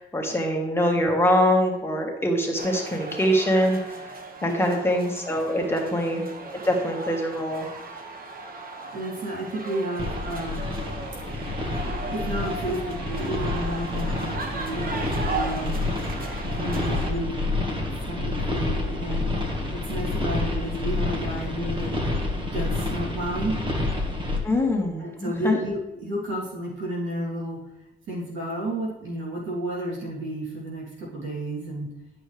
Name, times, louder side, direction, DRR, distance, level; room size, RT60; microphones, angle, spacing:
voice 1, 0.0-3.8 4.4-6.2 6.6-7.7 24.4-25.6, equal, 10° left, 0 dB, 1.7 m, -23 dB
sound 1, 2.6-17.1, right 3 dB, 45° right, 1.3 m, -37 dB
voice 2, 4.4-4.8 5.5-5.9 8.9-10.7 11.6-15.8 16.5-17.3 17.8-19.2 19.7-21.9 22.5-23.6 25.0-27.6 28.1-31.9, right 1 dB, 75° right, -4 dB, 3.2 m, -32 dB
sound 2, 10.0-24.4, left 2 dB, 25° right, 1.7 m, -28 dB
11.0 x 6.4 x 3.4 m, 0.97 s
cardioid pair, 90°, 20 cm